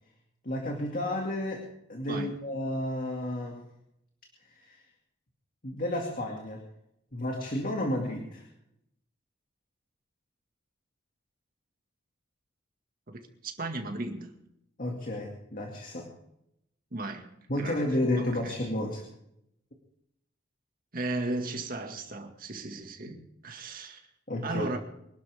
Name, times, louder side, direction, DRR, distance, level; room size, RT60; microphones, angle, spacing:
voice 1, 0.4-1.6 1.9-3.6 4.4-4.8 5.6-6.6 7.1-8.5 14.8-16.1 17.5-19.0 24.3-24.7, left 1 dB, 45° left, 2.3 m, -32 dB
voice 2, 13.1-14.4 16.9-17.3 17.6-17.9 18.2-18.6 20.9-23.2 23.4-24.0 24.4-24.8, right 2 dB, 50° right, 2.0 m, -35 dB
24.5 x 12.0 x 3.6 m
head